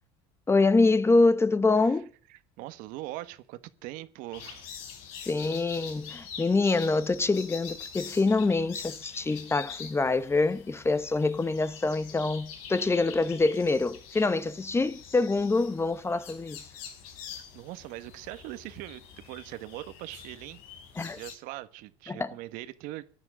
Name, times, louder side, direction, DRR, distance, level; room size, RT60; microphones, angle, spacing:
voice 1, 0.5-2.1 5.3-16.6 21.0-21.2 22.1-22.3, left 3 dB, 15° left, 1.1 m, -25 dB
voice 2, 2.3-4.7 17.5-20.6 21.0-23.1, right 16 dB, 70° right, 1.4 m, -41 dB
sound 1, 4.3-21.3, left 7 dB, 80° left, 3.8 m, -45 dB
15.5 x 11.0 x 6.2 m
supercardioid pair, 95°, 15 cm